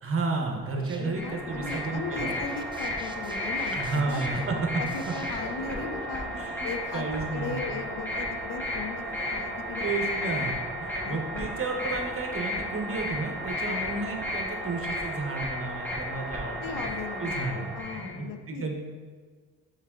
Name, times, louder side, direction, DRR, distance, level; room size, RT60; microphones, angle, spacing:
voice 1, 0.0-2.4 3.7-4.6 6.3-7.6 9.1-9.4 9.8-16.8 17.2-18.7, right 3 dB, 40° right, 2 dB, 1.0 m, -32 dB
sound 1, 0.6-6.1, right 1 dB, 15° right, 0.4 m, -45 dB
voice 2, 0.9-6.3 6.6-7.0 7.3-9.9 10.9-11.5 13.6-13.9 16.6-18.7, left 5 dB, 65° left, 6 dB, 0.7 m, -37 dB
sound 2, 1.0-18.1, left 1 dB, 5° left, 1.5 m, -33 dB
5.6 x 4.6 x 3.7 m, 1.5 s
cardioid pair, 90°, 35 cm